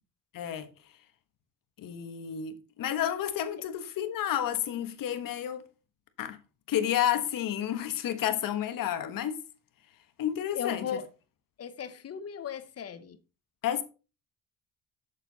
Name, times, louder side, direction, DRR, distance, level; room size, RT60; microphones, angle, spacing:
voice 1, 0.3-0.7 1.8-5.6 6.2-6.4 6.7-9.4 10.2-10.9 13.6-13.8, left 10 dB, 70° left, 1.3 m, -30 dB
voice 2, 10.5-11.1 11.6-13.2, left 8 dB, 45° left, 1.1 m, -36 dB
7.0 x 6.9 x 4.1 m
cardioid pair, 100°, 34 cm